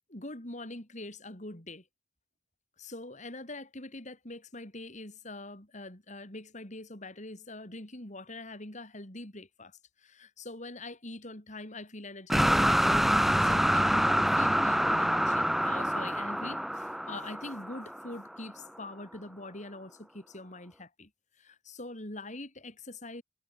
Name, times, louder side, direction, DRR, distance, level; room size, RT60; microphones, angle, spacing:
voice 1, 0.1-1.8 2.8-21.1 21.4-23.2, left 2 dB, 45° left, 4.6 m, -43 dB
sound 1, 12.3-18.3, equal, ahead, 0.7 m, -26 dB
head